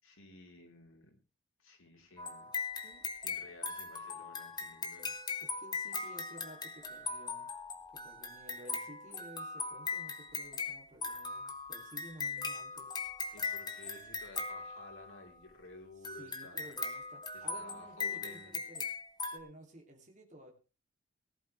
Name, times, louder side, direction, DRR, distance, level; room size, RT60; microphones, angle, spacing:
voice 1, 0.0-1.2 1.6-2.5 3.2-5.3 13.3-16.6 17.3-18.6, left 2 dB, 90° left, 2 dB, 4.0 m, -54 dB
sound 1, 2.2-15.3 16.0-19.4, left 4 dB, 20° left, 1.5 m, -40 dB
voice 2, 5.4-7.5 7.9-13.0 16.2-18.9 19.3-20.5, right 1 dB, 35° right, 1 dB, 2.8 m, -54 dB
18.5 x 12.0 x 3.3 m, 0.33 s
head